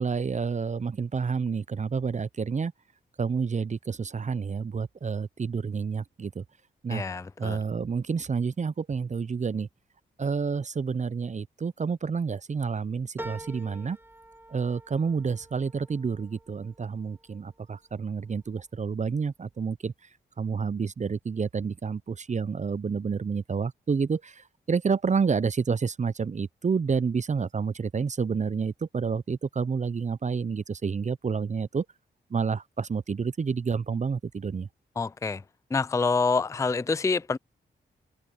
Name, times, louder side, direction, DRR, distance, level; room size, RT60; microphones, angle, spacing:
voice 1, 0.0-2.7 3.2-6.4 6.8-7.0 7.4-9.7 10.2-14.0 14.5-19.9 20.4-31.9 32.3-34.7, right 5 dB, 35° right, 0.7 m, -29 dB
voice 2, 6.9-7.6 35.0-35.4 35.7-37.4, left 4 dB, 15° left, 0.4 m, -27 dB
sound 1, 13.2-17.9 18.4-19.1 19.5-19.6, right 1 dB, 10° right, 1.8 m, -46 dB
supercardioid pair, 40°, 20 cm